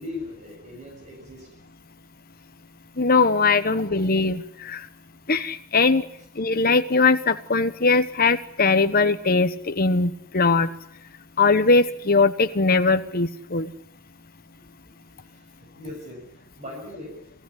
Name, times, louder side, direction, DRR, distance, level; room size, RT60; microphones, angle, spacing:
voice 1, 0.0-1.5 3.7-3.9 15.2-17.2, left 2 dB, 30° right, 1 dB, 6.9 m, -39 dB
voice 2, 3.0-4.9 5.3-6.1 6.3-10.7 11.4-13.7, left 3 dB, 40° left, 9 dB, 1.2 m, -20 dB
28.0 x 16.5 x 9.9 m, 0.66 s
head